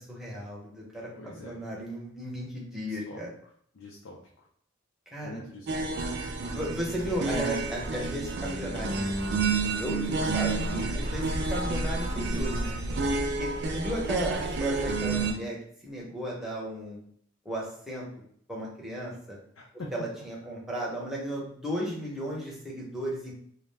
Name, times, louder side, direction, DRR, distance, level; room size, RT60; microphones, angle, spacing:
voice 1, 0.1-3.3 5.1-5.4 6.5-12.7 13.4-15.6 15.8-17.0 17.4-18.1 18.5-19.4 19.9-23.3, equal, ahead, -5 dB, 0.7 m, -35 dB
voice 2, 1.1-1.6 2.8-3.2 3.7-4.5 5.2-5.9 13.5-14.0 19.6-19.9, left 2 dB, 85° left, -2 dB, 0.5 m, -45 dB
sound 1, 5.7-15.3, right 3 dB, 55° right, 0.4 m, -30 dB
2.4 x 2.1 x 3.3 m, 0.63 s
head